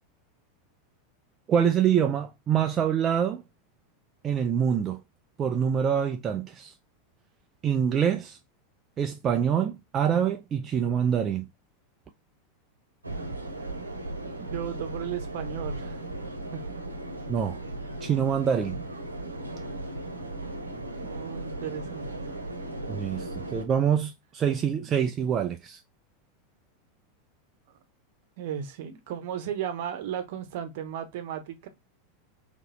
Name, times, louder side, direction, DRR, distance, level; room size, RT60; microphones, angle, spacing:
voice 1, 1.5-3.4 4.2-5.0 5.4-6.7 7.6-8.4 9.0-11.4 17.3-17.6 18.0-18.8 22.9-25.8, right 8 dB, 25° right, 0.5 m, -25 dB
sound 1, 13.0-23.6, right 1 dB, 80° right, 1.0 m, -36 dB
voice 2, 14.4-16.0 16.5-16.6 21.0-22.3 24.9-25.0 28.4-31.7, right 9 dB, 55° right, 1.0 m, -35 dB
4.0 x 3.0 x 3.9 m
figure-of-eight pair, 85°, 0 cm